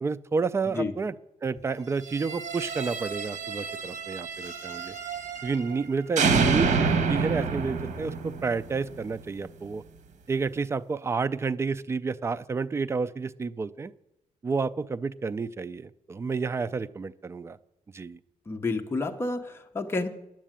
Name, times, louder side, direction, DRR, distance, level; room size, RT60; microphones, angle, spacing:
voice 1, 0.0-1.2 1.4-5.0 5.4-9.8 10.3-13.9 14.4-17.6 17.9-18.2, right 4 dB, 20° right, 14 dB, 0.4 m, -30 dB
sound 1, 2.0-5.8 6.2-9.2, right 5 dB, 80° right, 1.5 m, -28 dB
voice 2, 18.5-20.1, left 3 dB, 20° left, 4 dB, 0.8 m, -30 dB
10.0 x 7.4 x 8.8 m, 0.89 s
wide cardioid pair, 155°, 13 cm